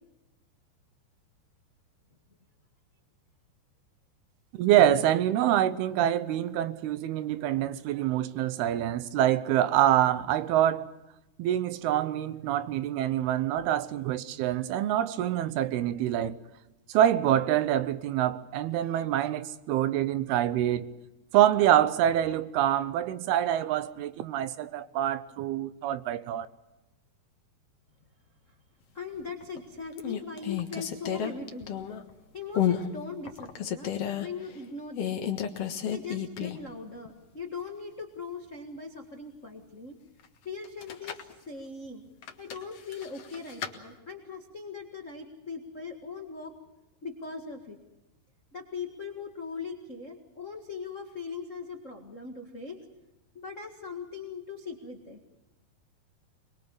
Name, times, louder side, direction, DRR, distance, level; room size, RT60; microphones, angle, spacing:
voice 1, 4.5-10.9 11.4-16.4 16.9-20.9 21.3-26.5, right 11 dB, 80° right, 2.8 m, -26 dB
voice 2, 28.9-33.9 34.2-35.2 35.9-39.9 40.4-41.2 41.5-42.0 42.4-46.5 47.0-47.8 48.5-52.8 53.3-55.2, left 4 dB, 75° left, 0.7 m, -40 dB
sound 1, 29.2-29.6 30.0-32.1 32.5-32.9 33.2-34.3 34.9-36.7 37.0-37.1 40.6-41.3 42.2-43.7, left 9 dB, 55° left, 1.7 m, -31 dB
23.5 x 22.0 x 7.0 m
omnidirectional pair, 4.7 m